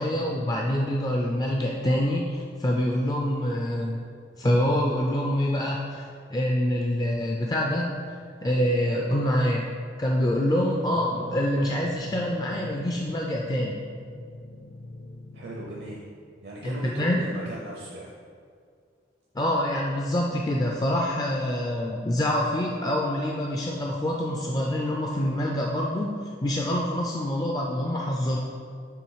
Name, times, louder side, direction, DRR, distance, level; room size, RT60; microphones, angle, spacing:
voice 1, 0.0-4.0 4.4-7.9 8.4-9.7 10.0-13.8 16.6-17.2 19.3-26.1 26.4-28.4, equal, 20° left, -1 dB, 0.3 m, -26 dB
sound 1, 10.9-16.0, left 1 dB, 60° left, 0.6 m, -43 dB
voice 2, 15.3-16.0 16.4-18.1, right 1 dB, 65° right, -3 dB, 0.6 m, -38 dB
7.0 x 3.3 x 4.7 m, 2.2 s
head